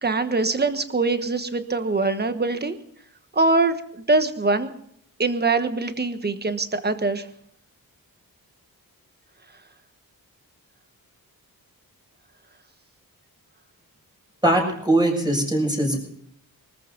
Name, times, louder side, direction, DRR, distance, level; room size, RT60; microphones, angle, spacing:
voice 1, 0.0-2.8 3.3-3.8 4.1-4.7 5.2-7.3, right 3 dB, 25° right, 9 dB, 1.3 m, -23 dB
voice 2, 14.4-16.0, right 1 dB, 10° right, 1 dB, 6.7 m, -21 dB
23.5 x 14.5 x 3.9 m, 0.67 s
wide cardioid pair, 140°, 37 cm